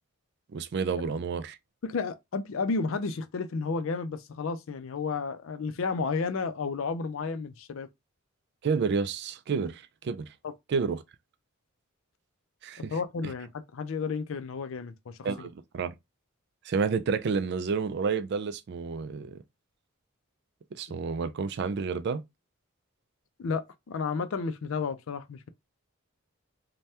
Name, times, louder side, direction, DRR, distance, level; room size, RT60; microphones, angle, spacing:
voice 1, 0.5-1.6 8.6-10.3 10.7-11.0 12.6-12.9 15.2-15.9 16.6-19.4 20.7-22.2, right 5 dB, 50° right, 0.3 m, -30 dB
voice 2, 1.8-7.9 10.4-10.5 12.9-15.5 23.4-25.5, left 4 dB, 65° left, 0.4 m, -32 dB
3.3 x 2.2 x 2.7 m
head